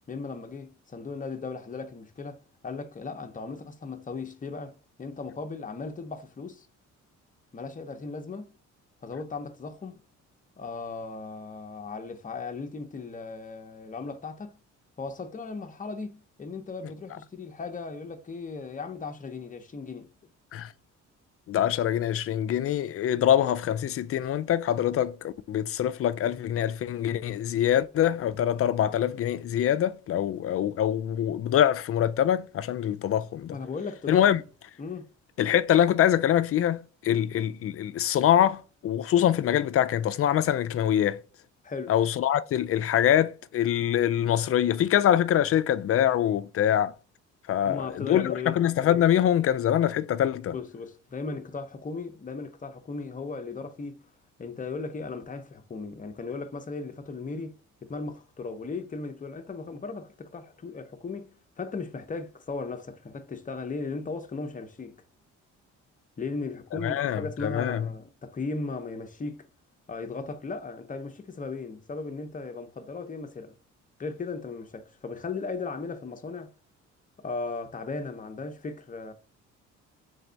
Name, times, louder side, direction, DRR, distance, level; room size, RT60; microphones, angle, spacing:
voice 1, 0.1-6.7 7.5-8.5 9.0-10.0 10.6-14.5 15.0-20.1 33.5-34.3 34.8-35.1 41.6-41.9 47.6-48.6 50.5-54.0 54.4-65.0 66.2-69.5 69.9-73.5 74.0-76.5 77.2-79.1, left 4 dB, 25° left, 0.7 m, -37 dB
voice 2, 21.5-33.6 34.1-34.4 35.4-41.2 41.9-46.9 47.5-50.5 66.8-67.9, left 10 dB, 50° left, 0.4 m, -24 dB
3.4 x 3.3 x 3.9 m
cardioid pair, 90°, 30 cm